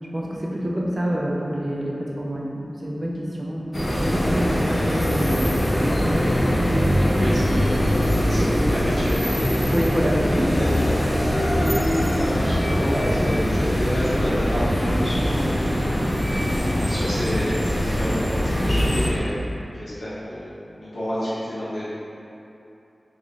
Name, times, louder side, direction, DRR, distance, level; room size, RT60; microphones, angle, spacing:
voice 1, 0.1-3.7 4.0-6.2 9.7-10.6 12.3-12.5, equal, 45° right, -4 dB, 0.6 m, -27 dB
sound 1, 3.7-19.1, equal, 45° left, 0.6 m, -22 dB
voice 2, 7.1-7.7 8.2-9.5 10.3-10.4 10.7-11.1 11.4-11.6 12.1-15.9 16.9-18.2 18.4-19.4 19.7-21.8, equal, 80° left, -12 dB, 0.9 m, -29 dB
3.1 x 2.6 x 3.8 m, 2.7 s
cardioid pair, 40°, 0 cm